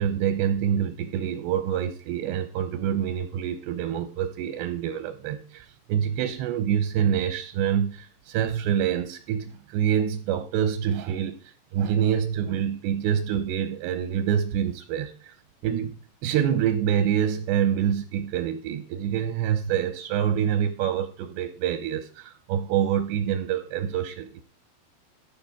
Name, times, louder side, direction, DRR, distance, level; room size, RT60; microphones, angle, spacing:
voice 1, 0.0-15.3 15.6-24.4, right 9 dB, 80° right, 2.5 m, -26 dB
14.5 x 5.0 x 7.1 m
omnidirectional pair, 5.7 m